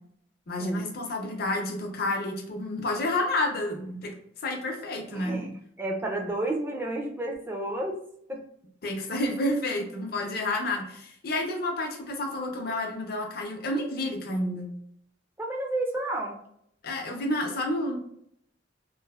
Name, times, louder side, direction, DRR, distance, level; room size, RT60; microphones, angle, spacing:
voice 1, 0.5-4.1 4.4-5.4 8.8-14.7 16.8-18.0, left 1 dB, 55° left, 1 dB, 0.6 m, -30 dB
voice 2, 5.1-8.0 8.3-8.4 15.4-16.4, right 1 dB, 10° right, 1 dB, 0.4 m, -31 dB
3.1 x 2.0 x 2.3 m, 0.71 s
head